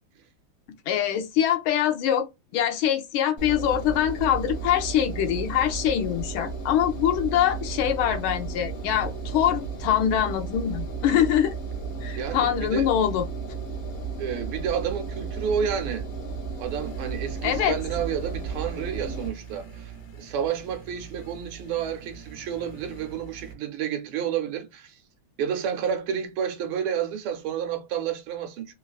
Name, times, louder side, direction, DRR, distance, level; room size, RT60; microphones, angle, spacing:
voice 1, 0.9-2.3 2.5-11.5 12.0-13.3 17.4-17.8, left 10 dB, 80° left, 1.5 m, -24 dB
Engine, 3.4-19.3, right 5 dB, 45° left, 0.7 m, -34 dB
voice 2, 12.2-12.9 14.2-16.1 16.6-24.9 25.4-28.7, right 8 dB, 80° right, 1.5 m, -30 dB
sound 1, 16.7-23.5, right 6 dB, 65° left, 1.5 m, -45 dB
3.7 x 2.3 x 2.3 m
omnidirectional pair, 2.3 m